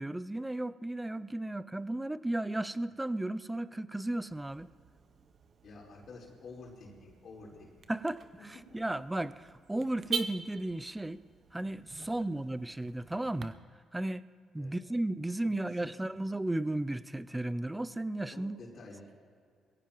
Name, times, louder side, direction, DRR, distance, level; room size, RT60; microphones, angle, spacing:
voice 1, 0.0-4.7 7.9-11.2 11.5-13.6 13.9-14.2 14.5-18.6, right 1 dB, 10° right, 16 dB, 0.5 m, -34 dB
Car / Alarm, 4.3-13.5, right 6 dB, 50° right, 0.8 m, -44 dB
voice 2, 5.6-7.9 12.0-12.1 14.5-14.8 15.8-16.0 18.3-19.1, left 3 dB, 60° left, -3 dB, 4.2 m, -50 dB
22.5 x 16.0 x 3.1 m, 2.1 s
cardioid pair, 90°, 0 cm